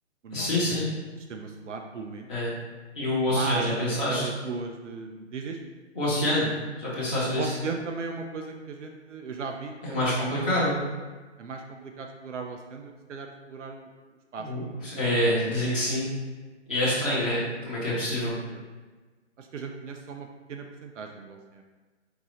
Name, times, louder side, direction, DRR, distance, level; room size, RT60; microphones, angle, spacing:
voice 1, 0.3-0.9 2.3-2.5 2.9-4.3 5.9-6.5 6.8-7.5 9.8-10.8 14.4-16.1 16.7-18.3, left 1 dB, 10° left, -17 dB, 0.5 m, -26 dB
voice 2, 1.3-2.3 3.3-5.6 7.4-10.1 10.4-10.5 11.4-13.9 14.3-14.7 18.0-18.6 19.4-21.6, right 4 dB, 80° right, 3 dB, 0.7 m, -37 dB
4.7 x 2.8 x 3.8 m, 1.3 s
hypercardioid pair, 165°, 36 cm